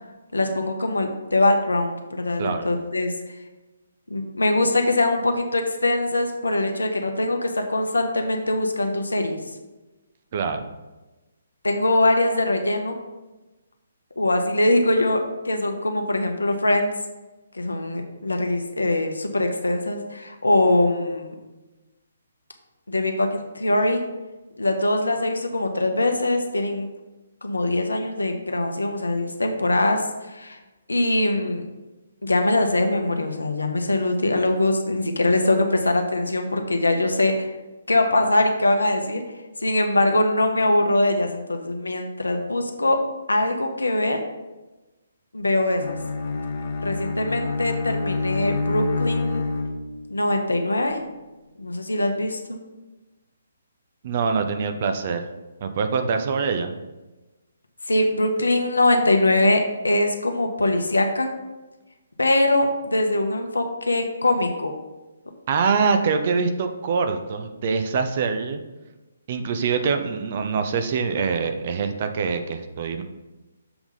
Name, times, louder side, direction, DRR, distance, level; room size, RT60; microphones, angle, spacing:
voice 1, 0.3-3.1 4.1-9.4 11.6-12.9 14.2-16.9 17.5-21.3 22.9-24.0 24.6-26.9 27.4-30.6 30.9-31.6 32.2-37.5 37.9-39.2 39.6-43.0 43.3-44.2 45.3-46.0 46.8-49.4 50.1-51.0 51.6-52.6 57.8-61.3 62.2-64.7, left 2 dB, 70° left, 5 dB, 0.9 m, -22 dB
voice 2, 10.3-10.7 54.0-55.2 55.6-56.7 65.5-68.6 69.3-73.0, right 5 dB, 40° right, 7 dB, 0.6 m, -24 dB
Bowed string instrument, 45.8-50.2, left 3 dB, 35° left, 0.8 m, -27 dB
6.9 x 3.5 x 5.6 m, 1.1 s
figure-of-eight pair, 135°, 0 cm